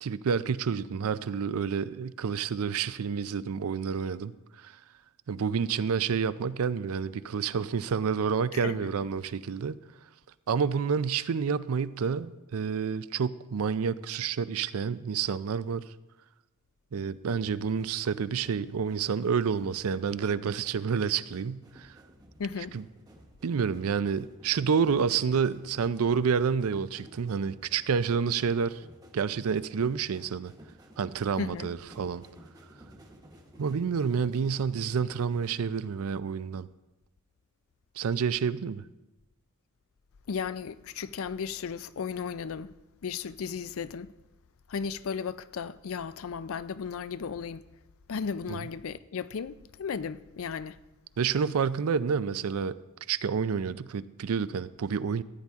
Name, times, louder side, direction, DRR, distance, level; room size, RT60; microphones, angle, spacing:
voice 1, 0.0-4.3 4.6-4.7 5.3-9.8 10.5-15.8 16.9-21.9 22.7-22.8 23.4-28.8 29.1-30.5 31.0-32.2 33.6-36.7 38.0-38.8 48.5-48.6 51.2-52.8 53.1-55.2, right 6 dB, 75° right, 0.4 m, -29 dB
sound 1, 17.3-35.5, equal, 15° right, 1.0 m, -55 dB
voice 2, 22.4-22.7 31.4-31.7 40.3-42.7 43.0-44.1 44.7-47.6 48.1-50.8, left 6 dB, 65° left, 0.4 m, -35 dB
14.5 x 9.7 x 3.6 m
head